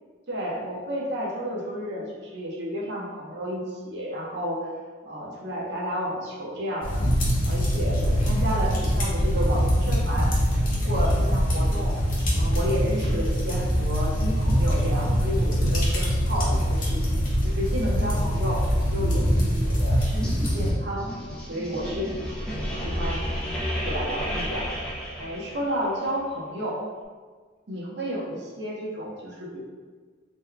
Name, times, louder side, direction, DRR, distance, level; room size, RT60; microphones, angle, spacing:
voice 1, 0.3-4.6 5.0-7.0 7.4-10.3 10.7-11.9 12.4-21.1 21.5-22.4 22.7-24.7 25.2-26.8 27.7-29.6, equal, 60° right, -4 dB, 0.7 m, -31 dB
sound 1, 6.8-20.7, equal, 45° left, 0.7 m, -23 dB
sound 2, 20.2-25.9, equal, 5° left, 0.4 m, -32 dB
2.9 x 2.2 x 3.7 m, 1.5 s
head